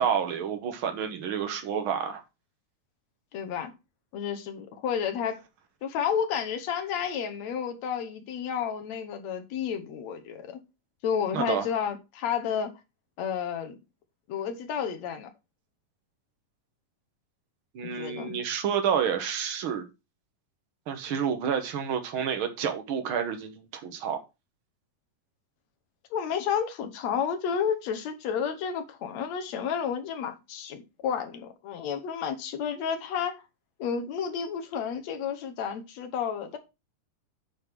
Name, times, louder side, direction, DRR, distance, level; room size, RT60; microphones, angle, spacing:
voice 1, 0.0-2.2 11.3-11.6 17.7-19.8 20.9-24.2, right 7 dB, 60° right, 1.4 m, -29 dB
voice 2, 3.3-3.7 4.1-5.4 5.8-10.6 11.0-12.7 13.2-13.8 14.3-15.3 17.8-18.4 26.1-33.4 33.8-36.6, left 7 dB, 65° left, 2.0 m, -31 dB
8.6 x 3.9 x 6.0 m
omnidirectional pair, 3.8 m